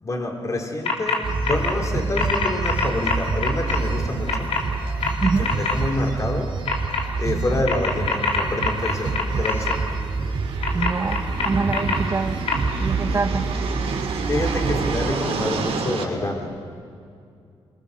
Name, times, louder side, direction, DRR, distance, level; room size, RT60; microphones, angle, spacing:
voice 1, 0.0-4.5 5.2-6.5 7.2-9.9 14.3-16.5, left 2 dB, 30° left, 3 dB, 3.4 m, -27 dB
sound 1, 0.9-1.2 1.4-1.7 2.2-3.8 4.3-4.6 5.0-5.7 6.7-7.0 7.7-9.7 10.6-12.0 12.5-12.6, left 5 dB, 85° left, 3.1 m, -24 dB
sound 2, 1.2-15.1, right 4 dB, 50° right, 2.5 m, -27 dB
sound 3, 8.8-16.0, right 4 dB, 75° right, 2.9 m, -31 dB
voice 2, 10.7-12.4 12.8-13.4, right 4 dB, 30° right, 11 dB, 0.9 m, -25 dB
24.5 x 22.0 x 6.5 m, 2.3 s
cardioid pair, 110°, 10 cm